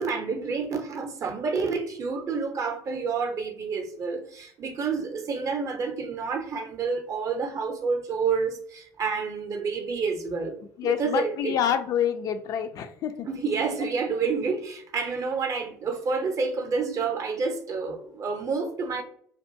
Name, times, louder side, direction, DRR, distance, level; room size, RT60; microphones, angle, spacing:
voice 1, 0.0-10.6 10.8-11.6 13.3-19.0, right 5 dB, 40° right, 6 dB, 0.5 m, -29 dB
voice 2, 10.8-13.3, left 9 dB, 50° left, 8 dB, 0.3 m, -27 dB
2.4 x 2.2 x 2.7 m, 0.64 s
hypercardioid pair, 55°, 8 cm